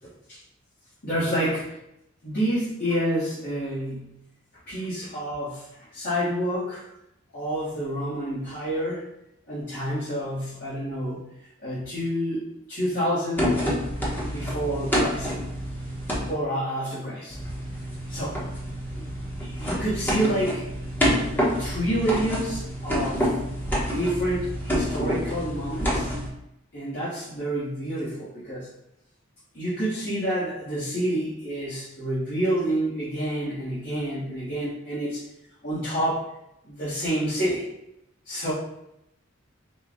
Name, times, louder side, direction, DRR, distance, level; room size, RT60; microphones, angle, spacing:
voice 1, 0.0-0.4 1.0-1.7 2.2-4.2 4.7-6.8 7.3-9.0 9.5-11.3 11.6-13.7 14.2-15.3 16.3-17.3 18.1-18.4 18.9-19.1 19.4-20.9 21.3-23.3 23.8-26.1 26.7-28.7 29.5-35.2 35.6-36.3 36.6-37.7 38.2-38.5, right 1 dB, 50° left, -12 dB, 1.5 m, -28 dB
sound 1, 13.4-16.3 17.3-26.3, equal, 10° left, 1.0 m, -28 dB
4.5 x 2.3 x 3.7 m, 0.81 s
head